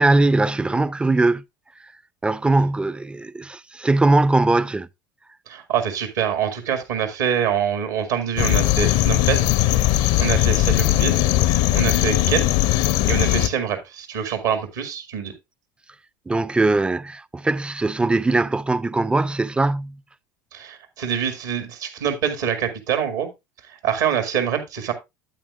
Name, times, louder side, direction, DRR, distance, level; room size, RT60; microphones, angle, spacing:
voice 1, 0.0-1.4 1.8-1.9 2.2-4.9 16.3-20.0, right 2 dB, 10° right, 0.4 m, -20 dB
voice 2, 5.5-9.5 9.8-11.2 11.7-12.5 13.0-15.3 20.5-23.3 23.7-24.9, right 8 dB, 75° right, 2.0 m, -25 dB
sound 1, 8.4-13.5, left 14 dB, 60° left, 0.6 m, -19 dB
8.9 x 8.6 x 2.4 m
hypercardioid pair, 70°, 10 cm